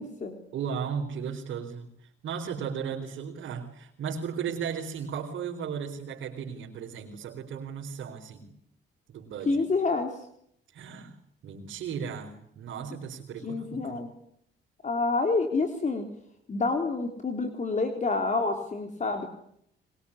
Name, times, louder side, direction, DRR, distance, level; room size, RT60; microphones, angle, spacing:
voice 1, 0.0-0.4 9.4-10.1 13.4-14.1 14.8-16.1 16.5-19.3, left 3 dB, 35° left, 6 dB, 3.5 m, -28 dB
voice 2, 0.5-1.9 2.2-8.5 9.1-9.6 10.7-11.2 11.4-14.0, right 7 dB, 75° right, -2 dB, 4.1 m, -35 dB
22.0 x 22.0 x 9.9 m, 0.71 s
cardioid pair, 90°, 20 cm